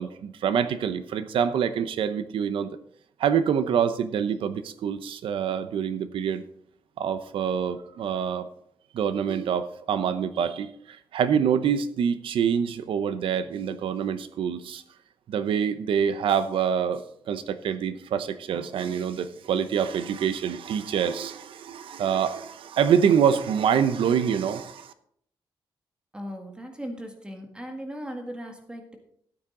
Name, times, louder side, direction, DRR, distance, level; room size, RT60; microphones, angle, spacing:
voice 1, 0.0-2.7 3.2-6.4 7.0-8.5 8.9-14.8 15.3-24.9, right 8 dB, 85° right, 12 dB, 0.8 m, -26 dB
voice 2, 26.1-29.0, equal, 10° right, 3 dB, 1.7 m, -38 dB
13.5 x 8.7 x 3.9 m, 0.68 s
wide cardioid pair, 150°, 9 cm